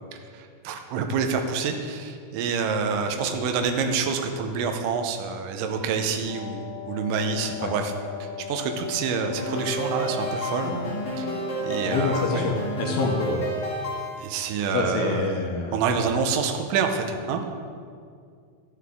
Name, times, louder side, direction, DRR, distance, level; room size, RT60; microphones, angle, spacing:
voice 1, 0.3-7.9 8.2-10.7 11.2-11.3 11.6-12.5 14.1-17.4, right 5 dB, 80° right, 5 dB, 2.2 m, -27 dB
Wind instrument woodwind instrument, 6.2-13.0, left 7 dB, 10° right, 1.7 m, -38 dB
sound 1, 9.4-14.4, right 1 dB, 30° left, 1.6 m, -31 dB
voice 2, 11.8-13.5 14.7-15.8, left 4 dB, 85° left, 0 dB, 2.6 m, -26 dB
13.0 x 7.8 x 3.6 m, 2.2 s
omnidirectional pair, 4.2 m